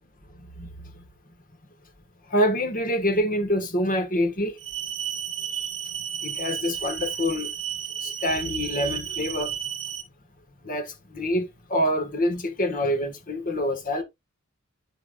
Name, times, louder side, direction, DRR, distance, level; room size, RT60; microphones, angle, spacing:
voice 1, 2.3-4.6 6.2-7.5 8.0-9.5 10.7-14.0, equal, 40° left, 1.7 m, -26 dB
sound 1, 4.6-10.0, right 9 dB, 60° right, 2.0 m, -32 dB
13.5 x 4.6 x 2.5 m
head